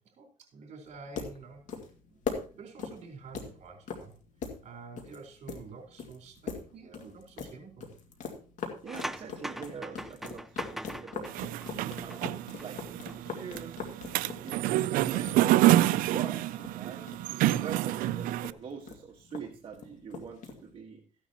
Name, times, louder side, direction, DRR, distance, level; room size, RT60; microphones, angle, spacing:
voice 1, 0.0-1.6 2.1-2.2 2.5-4.1 4.6-7.9, right 4 dB, 55° right, 2 dB, 4.2 m, -48 dB
sound 1, 0.8-20.8, left 6 dB, 65° left, 2.1 m, -42 dB
voice 2, 8.8-11.3 11.8-13.8 14.2-17.1 17.6-21.0, right 6 dB, 40° right, -1 dB, 1.6 m, -44 dB
sound 2, 8.9-12.7 13.0-13.2, right 1 dB, ahead, 0.5 m, -41 dB
sound 3, 11.3-18.5, right 15 dB, 85° right, 0.4 m, -27 dB
14.5 x 10.0 x 2.9 m, 0.38 s
cardioid pair, 120°, 14 cm